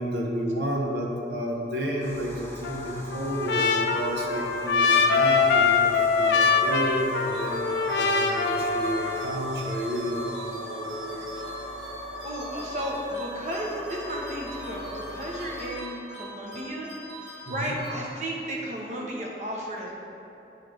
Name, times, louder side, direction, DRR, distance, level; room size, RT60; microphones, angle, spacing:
voice 1, 0.0-11.4 17.5-17.8, equal, 70° right, -1 dB, 0.8 m, -31 dB
sound 1, 2.0-15.8, equal, 15° left, 1.2 m, -39 dB
Trumpet, 2.6-9.4, left 5 dB, 75° left, 0.4 m, -24 dB
sound 2, 7.3-18.5, equal, 25° right, 1.2 m, -43 dB
voice 2, 12.2-16.9 17.2-19.9, equal, 40° right, -2 dB, 0.9 m, -33 dB
8.2 x 3.2 x 4.8 m, 2.9 s
head